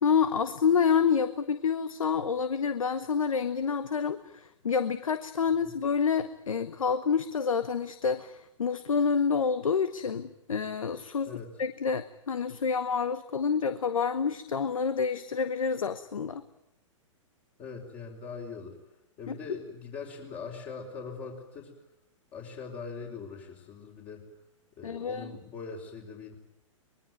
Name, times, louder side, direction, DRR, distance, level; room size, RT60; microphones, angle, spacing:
voice 1, 0.0-11.3 11.6-16.4 19.3-19.4 24.8-25.3, left 6 dB, 80° left, 12 dB, 1.2 m, -28 dB
voice 2, 17.6-18.8 19.2-21.7 22.3-24.2 24.8-26.4, left 5 dB, 35° left, -1 dB, 4.8 m, -41 dB
24.0 x 21.5 x 9.5 m, 0.82 s
hypercardioid pair, 115°, 17 cm